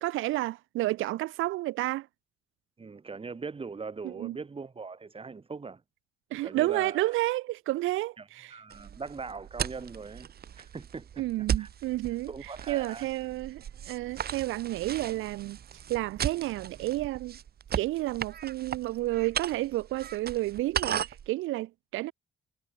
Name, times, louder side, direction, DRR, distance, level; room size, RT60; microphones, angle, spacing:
voice 1, 0.0-2.1 4.0-4.4 6.3-8.6 11.2-17.4 17.8-22.1, right 17 dB, 90° right, 0.8 m, -31 dB
voice 2, 2.8-5.8 6.4-7.2 8.2-10.3 10.6-11.7 12.3-13.1, right 4 dB, 30° right, 1.9 m, -41 dB
sound 1, 8.7-21.3, right 9 dB, 50° right, 1.2 m, -37 dB
cardioid pair, 90°, 20 cm